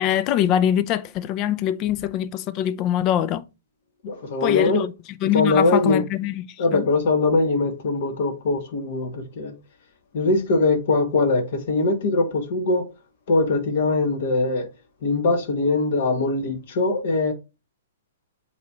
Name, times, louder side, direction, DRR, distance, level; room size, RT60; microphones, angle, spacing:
voice 1, 0.0-3.4 4.4-4.9 5.2-6.5 6.7-6.9, left 11 dB, 35° left, 0.6 m, -23 dB
voice 2, 4.0-4.8 5.2-6.0 6.6-9.5 10.1-12.8 13.3-14.7 15.0-17.3, left 3 dB, 60° left, 1.7 m, -22 dB
7.9 x 3.3 x 4.2 m
hypercardioid pair, 120°, 0 cm